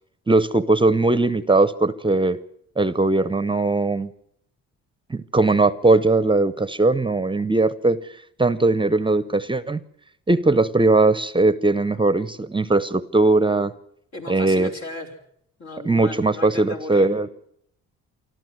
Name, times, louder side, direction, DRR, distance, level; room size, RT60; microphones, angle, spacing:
voice 1, 0.3-2.4 2.8-4.1 5.1-8.0 8.4-9.8 10.3-13.7 14.3-14.7 15.8-17.3, right 2 dB, 15° right, 16 dB, 0.7 m, -19 dB
voice 2, 14.1-15.1 15.6-17.1, left 2 dB, 65° left, 3 dB, 4.3 m, -36 dB
24.5 x 14.0 x 7.7 m, 0.71 s
cardioid pair, 90°, 30 cm